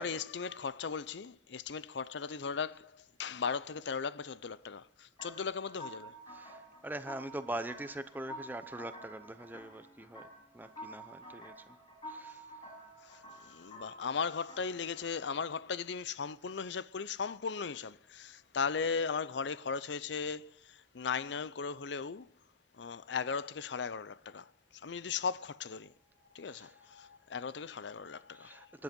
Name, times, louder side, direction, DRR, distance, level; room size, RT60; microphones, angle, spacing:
voice 1, 0.0-6.2 13.0-22.3 22.7-25.9 26.3-28.8, left 5 dB, 70° left, 0.5 m, -37 dB
sound 1, 5.2-15.1, right 1 dB, 25° left, 6.0 m, -50 dB
voice 2, 6.3-10.3 10.5-11.7 12.1-12.5 12.7-12.9 13.5-13.6 26.5-26.7 28.4-28.8, right 1 dB, 10° right, 0.7 m, -43 dB
24.5 x 11.0 x 5.3 m
head